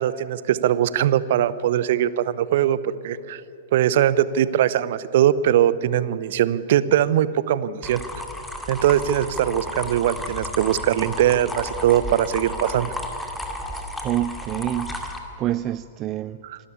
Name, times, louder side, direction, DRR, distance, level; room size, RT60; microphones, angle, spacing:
voice 1, 0.0-3.4 3.7-8.0 8.7-12.9 16.4-16.6, right 11 dB, 50° right, 17 dB, 0.7 m, -21 dB
sound 1, 7.8-15.2, left 1 dB, 5° left, 2.3 m, -33 dB
voice 2, 13.7-15.0 15.4-16.4, right 13 dB, 30° right, 16 dB, 0.4 m, -27 dB
26.5 x 12.5 x 8.5 m, 3.0 s
figure-of-eight pair, 100°, 0 cm